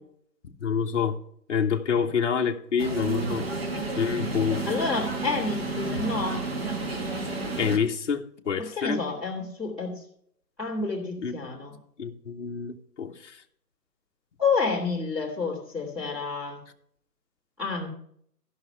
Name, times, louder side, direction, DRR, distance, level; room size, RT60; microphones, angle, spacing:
voice 1, 0.6-1.2 1.5-3.4 3.9-4.6 7.6-9.0 11.2-11.3 12.0-13.1, left 6 dB, 45° left, 0.8 m, -27 dB
sound 1, 2.8-7.8, right 3 dB, 35° right, 1.4 m, -31 dB
voice 2, 4.6-6.4 8.6-10.0 10.6-11.7 14.4-16.6 17.6-17.9, left 4 dB, ahead, 1.4 m, -29 dB
13.5 x 5.7 x 5.6 m
hypercardioid pair, 165°, 49 cm